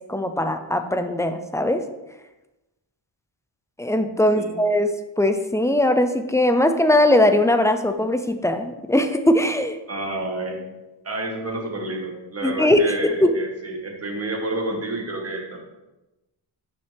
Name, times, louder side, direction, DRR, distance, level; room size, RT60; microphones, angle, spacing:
voice 1, 0.1-1.8 3.8-9.8 12.4-13.4, left 1 dB, 5° left, 8 dB, 0.3 m, -20 dB
voice 2, 9.9-10.6 11.0-15.6, right 2 dB, 30° right, 1 dB, 1.4 m, -29 dB
8.8 x 6.3 x 3.4 m, 1.0 s
wide cardioid pair, 175°, 46 cm